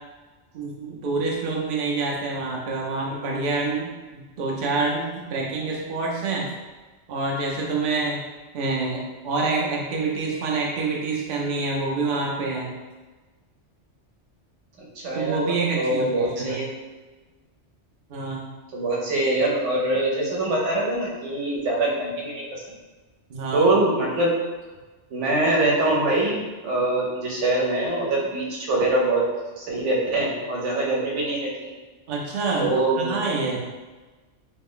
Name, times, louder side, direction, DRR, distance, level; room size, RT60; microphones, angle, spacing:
voice 1, 0.5-6.5 7.1-8.2 8.5-12.7 15.1-16.6 18.1-18.4 23.3-23.7 32.1-33.6, right 3 dB, 55° right, -2 dB, 0.7 m, -27 dB
voice 2, 14.8-15.4 15.8-16.7 18.7-22.6 23.5-24.4 25.1-29.2 29.6-31.7 32.6-33.2, right 2 dB, 85° right, -3 dB, 1.1 m, -23 dB
3.1 x 2.0 x 3.7 m, 1.3 s
omnidirectional pair, 1.2 m